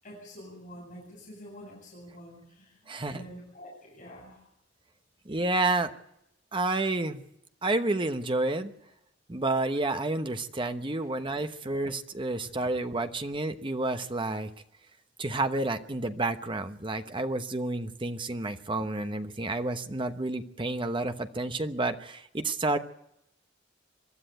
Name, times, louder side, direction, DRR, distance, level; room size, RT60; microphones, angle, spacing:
voice 1, 0.0-4.4 10.9-11.1 11.3-11.4, equal, 45° left, -4 dB, 7.9 m, -47 dB
voice 2, 2.9-3.2 5.2-5.9 6.5-7.2 7.6-8.7 9.3-14.5 15.2-22.8, right 2 dB, 25° right, 8 dB, 1.0 m, -30 dB
24.0 x 12.5 x 9.1 m, 0.80 s
head